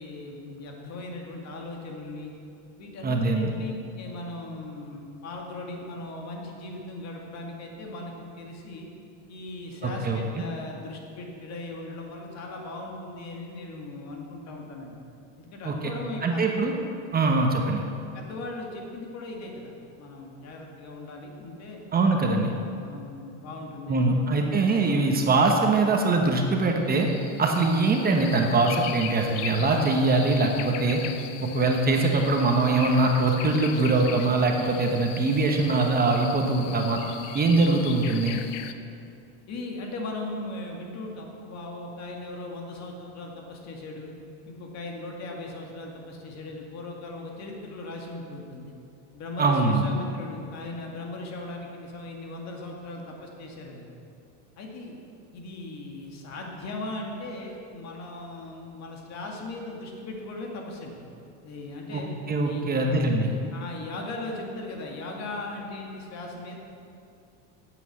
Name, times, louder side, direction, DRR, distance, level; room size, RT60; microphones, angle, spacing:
voice 1, 0.0-2.3 2.8-8.9 9.3-15.0 15.4-16.6 18.1-21.8 22.3-22.4 22.8-24.6 39.5-44.1 44.5-48.7 49.1-53.9 54.6-54.9 55.3-61.0 61.4-62.1 62.4-62.9 63.2-66.6, left 2 dB, 50° left, 1 dB, 2.1 m, -38 dB
voice 2, 3.0-3.5 10.0-10.2 15.6-15.9 16.2-16.7 17.1-17.8 21.9-22.5 23.9-27.1 27.4-31.0 31.4-37.0 37.3-38.4 49.4-49.9 61.9-63.3, right 3 dB, 25° right, 2 dB, 1.1 m, -23 dB
sound 1, 26.7-38.7, left 10 dB, 90° left, 0.8 m, -39 dB
9.2 x 8.0 x 7.3 m, 2.6 s
supercardioid pair, 125°, 35 cm